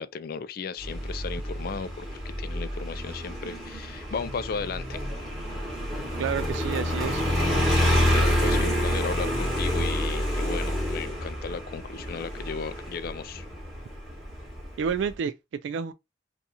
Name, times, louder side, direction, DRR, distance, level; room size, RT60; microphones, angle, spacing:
voice 1, 0.0-5.0 7.4-13.5, left 5 dB, 55° left, 0.3 m, -35 dB
Motorcycle, 0.8-15.1, equal, ahead, 1.1 m, -28 dB
voice 2, 6.2-7.2 14.8-15.3 15.6-15.9, right 7 dB, 85° right, 0.3 m, -29 dB
2.7 x 2.3 x 4.0 m
head